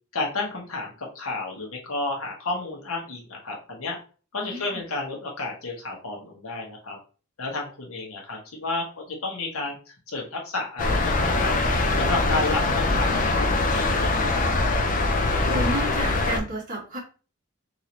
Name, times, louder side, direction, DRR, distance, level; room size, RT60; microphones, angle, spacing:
voice 1, 0.1-4.0 4.3-7.0 7.4-9.8 10.1-11.5 12.0-14.4, left 3 dB, 80° left, 0 dB, 1.2 m, -31 dB
voice 2, 4.4-4.8 15.4-17.0, right 1 dB, 40° right, -4 dB, 1.8 m, -31 dB
sound 1, 10.8-16.4, left 2 dB, 40° left, 0.5 m, -23 dB
3.9 x 2.8 x 3.0 m, 0.36 s
head